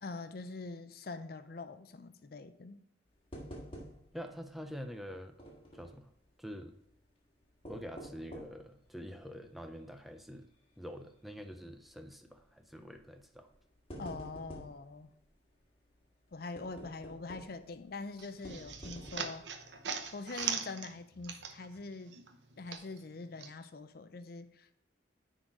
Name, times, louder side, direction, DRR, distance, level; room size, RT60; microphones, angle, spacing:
voice 1, 0.0-2.8 14.0-15.1 16.3-19.5 20.1-22.2 22.6-24.8, left 3 dB, 50° left, 0.5 m, -44 dB
sound 1, 3.3-4.3 4.6-4.7 5.4-6.1 7.4-8.7 9.2-9.3 10.0-10.2 10.5-10.6 11.8-12.1 13.0-13.1 13.5-14.8 16.6-17.7 18.4-19.4 20.0-20.1 20.4-20.5, equal, 30° left, 1.5 m, -48 dB
voice 2, 4.1-5.4 5.7-6.1 6.4-6.7 7.6-10.5 10.8-13.5, equal, ahead, 0.4 m, -46 dB
sound 2, 18.2-21.8 22.1-23.5, right 7 dB, 70° right, 0.8 m, -40 dB
9.9 x 4.0 x 4.7 m
head